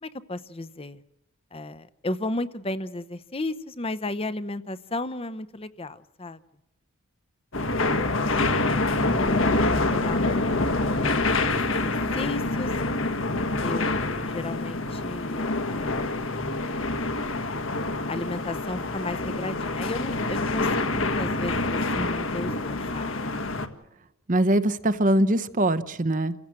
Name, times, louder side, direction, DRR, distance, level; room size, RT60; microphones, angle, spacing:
voice 1, 0.0-1.0 1.5-6.4 8.4-12.7 13.6-16.4 18.1-23.3, left 2 dB, 25° left, 14 dB, 0.8 m, -34 dB
sound 1, 7.5-23.7, left 2 dB, 70° left, 1.7 m, -26 dB
voice 2, 24.3-26.3, right 1 dB, 40° right, 13 dB, 0.9 m, -22 dB
29.0 x 16.0 x 7.6 m, 0.91 s
head